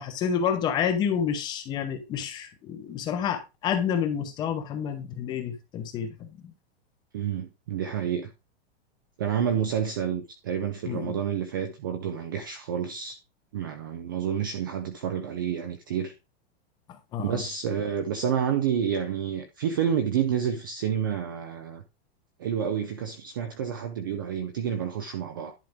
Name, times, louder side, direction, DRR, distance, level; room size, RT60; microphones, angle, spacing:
voice 1, 0.0-6.5 10.9-11.2 16.9-17.4, left 8 dB, 15° left, 0.7 m, -29 dB
voice 2, 7.1-8.3 9.2-13.2 13.5-16.1 17.2-21.8 22.4-25.5, right 8 dB, 20° right, 0.3 m, -29 dB
10.5 x 4.9 x 3.4 m
supercardioid pair, 175°, 31 cm